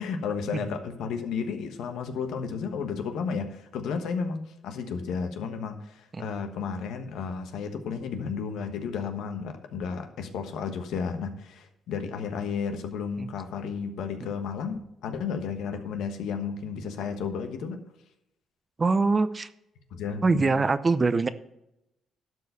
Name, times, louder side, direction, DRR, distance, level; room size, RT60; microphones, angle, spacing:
voice 1, 0.0-17.8 19.9-20.5, left 6 dB, 80° left, 6 dB, 1.3 m, -33 dB
voice 2, 18.8-19.5 20.2-21.3, right 3 dB, 30° right, 13 dB, 0.6 m, -23 dB
12.0 x 4.8 x 6.7 m, 0.84 s
cardioid pair, 90°, 0 cm